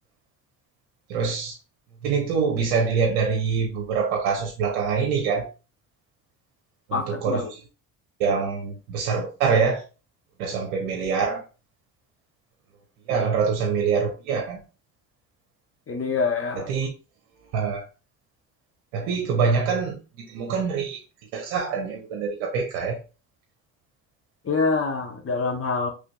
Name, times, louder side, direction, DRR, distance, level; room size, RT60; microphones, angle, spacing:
voice 1, 1.1-1.5 2.0-5.5 6.9-7.4 8.2-9.8 10.4-11.4 13.1-14.6 16.6-16.9 17.5-17.8 18.9-21.0 21.3-23.0, right 5 dB, 80° right, 1.0 m, -25 dB
voice 2, 6.9-7.5 15.9-16.7 24.4-25.9, left 4 dB, 30° left, 1.3 m, -25 dB
4.9 x 3.2 x 2.3 m
supercardioid pair, 65°, 43 cm